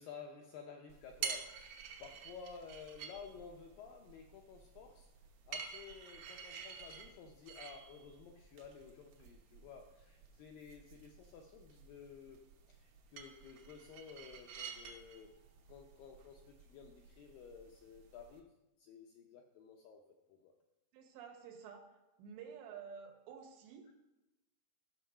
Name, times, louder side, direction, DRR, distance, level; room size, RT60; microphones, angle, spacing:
voice 1, 0.0-1.7 2.0-5.1 5.5-15.3 15.7-18.5 18.8-20.0 20.3-20.5, left 6 dB, 80° left, 2 dB, 2.0 m, -53 dB
sound 1, 0.9-18.4, right 6 dB, 65° right, 2.5 m, -50 dB
voice 2, 20.9-21.8 22.2-23.9, right 7 dB, 80° right, 4 dB, 3.5 m, -51 dB
14.0 x 6.5 x 5.5 m, 1.0 s
omnidirectional pair, 4.9 m